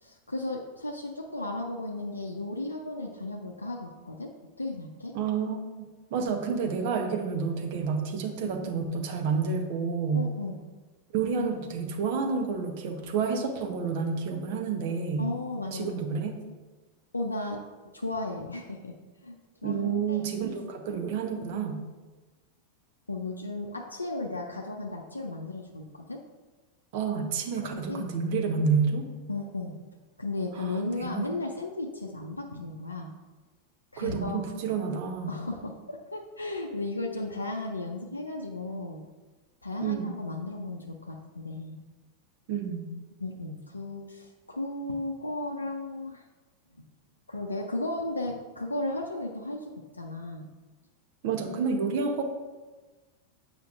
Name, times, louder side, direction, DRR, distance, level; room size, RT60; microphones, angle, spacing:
voice 1, 0.0-5.1 10.1-10.6 15.2-16.0 17.1-17.6 17.9-18.9 19.2-20.2 23.1-26.2 27.6-28.1 29.3-29.8 30.2-33.1 33.9-34.4 35.3-39.0 39.6-41.8 43.2-46.2 46.8-46.9 47.3-50.5, left 2 dB, 80° left, 1 dB, 0.4 m, -35 dB
voice 2, 5.1-10.3 11.1-15.3 15.7-16.4 19.6-21.8 26.9-29.1 30.6-30.7 31.0-31.2 34.0-35.3 39.8-40.2 42.5-42.9 51.2-52.2, right 5 dB, 50° right, 4 dB, 0.9 m, -29 dB
8.1 x 5.0 x 2.5 m, 1.3 s
figure-of-eight pair, 90°, 0 cm